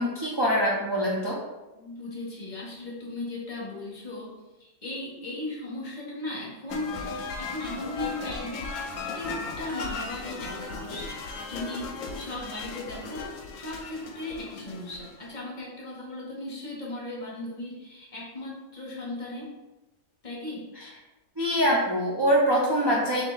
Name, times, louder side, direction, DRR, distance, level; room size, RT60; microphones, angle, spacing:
voice 1, 0.0-1.4 20.8-20.9 21.4-23.2, equal, 45° right, -5 dB, 0.3 m, -24 dB
voice 2, 1.7-4.3 4.6-8.9 9.1-11.2 11.5-19.5 20.2-20.7, left 2 dB, 40° left, -4 dB, 1.0 m, -37 dB
sound 1, 6.7-15.3, left 4 dB, 75° left, 0.9 m, -37 dB
3.5 x 2.8 x 3.9 m, 1.1 s
omnidirectional pair, 1.4 m